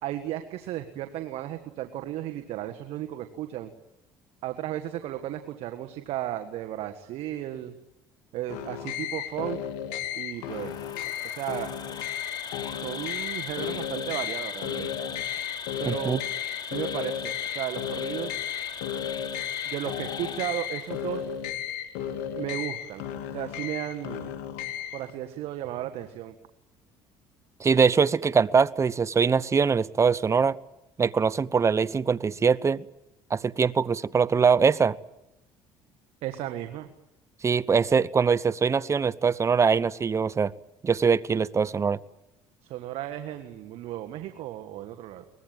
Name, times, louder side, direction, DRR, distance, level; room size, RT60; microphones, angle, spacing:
voice 1, 0.0-3.7 4.4-7.7 8.3-9.6 10.1-10.9 11.2-11.7 12.8-14.9 15.8-16.2 16.7-18.4 19.5-21.3 22.3-23.1 23.3-24.3 24.9-26.3 36.2-36.9 42.6-45.3, right 13 dB, 70° right, 7 dB, 1.6 m, -34 dB
sound 1, 8.5-25.1, left 9 dB, 90° left, 2.6 m, -34 dB
Insect, 10.4-21.2, left 7 dB, 45° left, 4.0 m, -39 dB
voice 2, 15.9-16.2 27.6-30.6 31.0-32.8 33.3-35.0 37.4-40.5 40.8-42.0, right 5 dB, 30° right, 19 dB, 0.8 m, -22 dB
23.5 x 20.5 x 9.2 m, 0.90 s
supercardioid pair, 90°, 10 cm